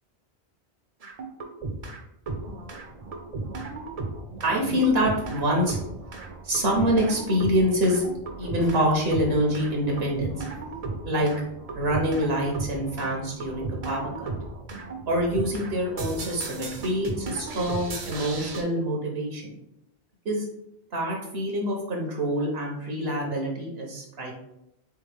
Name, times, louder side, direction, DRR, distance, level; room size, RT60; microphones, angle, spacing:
sound 1, 1.0-2.0 2.3-18.6, right 3 dB, 45° right, 0.6 m, -35 dB
voice 1, 4.4-5.8 6.4-8.0 8.4-10.4 11.0-11.3 11.7-14.3 15.1-19.5 20.2-20.4 20.9-24.3, equal, 70° right, -1 dB, 1.1 m, -26 dB
3.5 x 3.5 x 3.3 m, 0.83 s
omnidirectional pair, 1.1 m